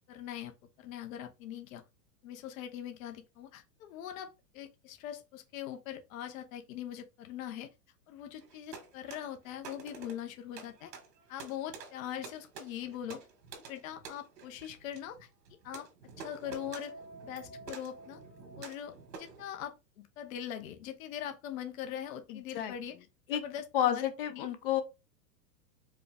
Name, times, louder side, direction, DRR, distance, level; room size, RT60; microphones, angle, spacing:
voice 1, 0.1-0.5 0.8-1.8 2.2-4.3 4.5-7.7 8.1-10.9 11.3-13.2 13.7-15.3 15.6-15.9 16.2-16.9 17.2-18.2 18.5-23.0 23.3-24.5, left 10 dB, 55° left, 0.8 m, -42 dB
sound 1, 8.4-19.5, right 5 dB, 85° right, 1.8 m, -50 dB
sound 2, 16.4-19.2, right 2 dB, 80° left, 1.5 m, -51 dB
voice 2, 22.3-22.7 23.3-23.4 23.7-24.8, left 10 dB, 35° left, 0.5 m, -30 dB
4.8 x 2.3 x 3.4 m
hypercardioid pair, 145°, 49 cm